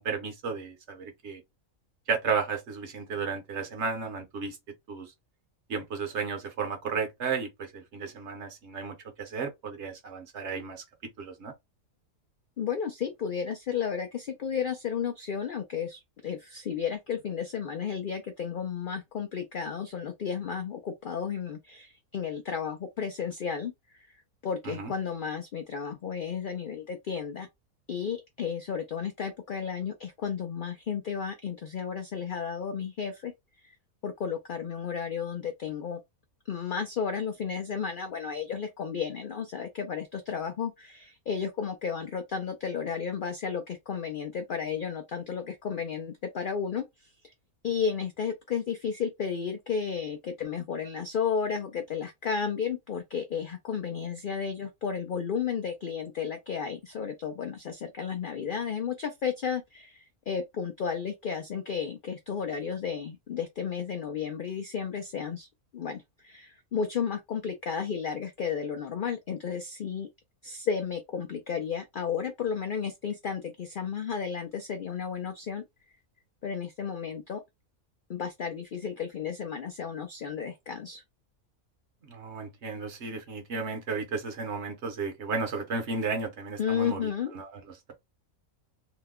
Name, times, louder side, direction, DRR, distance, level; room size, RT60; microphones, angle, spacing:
voice 1, 0.0-1.4 2.1-4.6 4.9-5.1 5.7-10.8 11.2-11.5 24.6-24.9 82.1-87.1 87.3-87.6, right 5 dB, 60° right, 1.0 m, -33 dB
voice 2, 12.6-23.7 24.1-27.5 27.9-33.3 33.6-33.7 34.0-36.0 36.5-46.8 47.2-47.3 47.6-65.5 65.7-70.1 70.4-75.6 76.4-77.4 78.1-81.0 86.6-87.3, left 7 dB, 65° left, 0.5 m, -33 dB
2.9 x 2.1 x 3.5 m
omnidirectional pair, 1.5 m